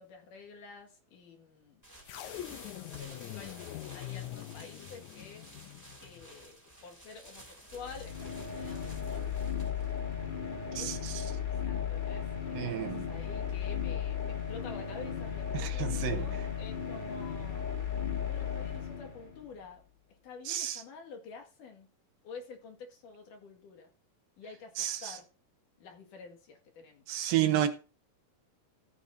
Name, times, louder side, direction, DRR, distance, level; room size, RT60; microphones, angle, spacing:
voice 1, 0.0-1.8 2.7-3.5 3.9-5.5 6.0-9.5 10.6-11.2 11.6-17.7 18.3-19.8 20.2-21.9 22.2-23.9 24.4-25.3 25.8-27.2, left 4 dB, 65° left, 3.3 m, -49 dB
sound 1, 1.8-11.4, right 1 dB, 5° left, 2.2 m, -53 dB
sound 2, 2.1-6.3, left 14 dB, 85° left, 1.7 m, -44 dB
sound 3, 7.7-19.5, left 8 dB, 35° left, 0.7 m, -35 dB
voice 2, 10.7-11.2 12.5-13.1 15.5-16.3 20.5-20.8 24.8-25.2 27.1-27.7, right 12 dB, 75° right, 2.6 m, -31 dB
14.5 x 10.0 x 2.7 m
omnidirectional pair, 4.2 m